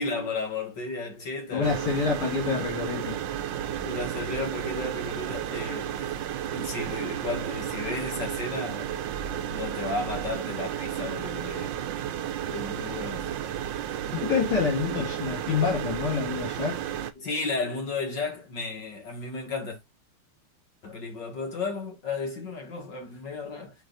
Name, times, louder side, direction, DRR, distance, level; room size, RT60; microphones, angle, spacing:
voice 1, 0.0-1.9 3.8-6.1 6.5-8.9 9.5-11.8 12.5-13.3 17.2-19.8 20.8-23.7, left 3 dB, 60° left, 2.4 m, -34 dB
voice 2, 1.5-3.2 14.1-16.8, left 5 dB, 75° left, 2.9 m, -27 dB
sound 1, 1.6-17.1, right 10 dB, 70° right, 1.3 m, -32 dB
8.7 x 3.3 x 4.0 m
omnidirectional pair, 2.3 m